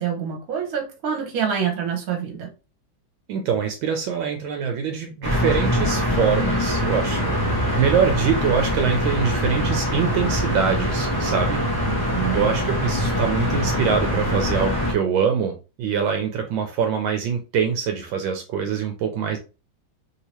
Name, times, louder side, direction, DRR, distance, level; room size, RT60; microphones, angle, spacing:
voice 1, 0.0-2.5 11.9-12.4, right 8 dB, 55° right, 1.3 m, -26 dB
voice 2, 3.3-7.4 7.7-11.6 12.3-19.4, right 7 dB, 80° right, 1.3 m, -24 dB
sound 1, 5.2-14.9, equal, 30° left, 0.4 m, -23 dB
3.4 x 2.8 x 2.9 m
omnidirectional pair, 2.1 m